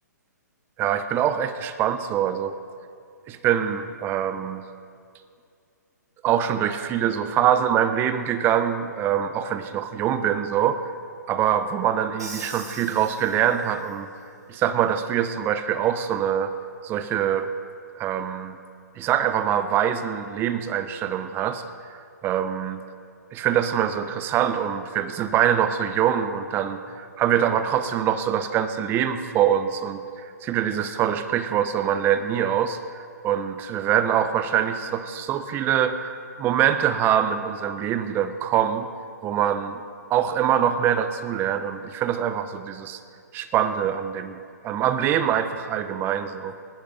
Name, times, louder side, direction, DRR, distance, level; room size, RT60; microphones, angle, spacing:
voice 1, 0.8-2.6 3.3-4.6 6.2-10.8 11.3-14.1 14.5-16.5 16.8-17.5 18.0-18.6 19.0-22.0 22.2-22.8 23.3-36.1 36.4-38.9 39.2-39.8 40.1-43.0 43.3-44.4 44.6-46.6, right 9 dB, 20° right, 10 dB, 0.8 m, -24 dB
Crash cymbal, 12.2-13.9, right 3 dB, 65° right, 2.8 m, -41 dB
19.0 x 10.0 x 5.3 m, 2.3 s
figure-of-eight pair, 130°, 10 cm